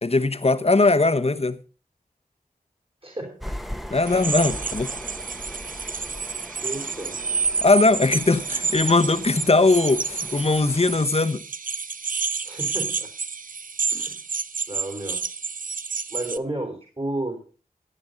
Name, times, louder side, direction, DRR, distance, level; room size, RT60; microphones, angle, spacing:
voice 1, 0.0-1.6 3.9-4.9 7.6-11.4, left 3 dB, 45° left, 1.1 m, -20 dB
voice 2, 3.0-3.5 6.6-7.2 12.4-13.1 13.9-14.2 14.7-15.2 16.1-17.4, right 1 dB, 40° right, 3.6 m, -32 dB
sound 1, 3.4-11.1, equal, ahead, 1.0 m, -39 dB
sound 2, 4.0-16.4, right 5 dB, 65° right, 0.6 m, -30 dB
15.5 x 8.9 x 5.2 m
wide cardioid pair, 45°, 15 cm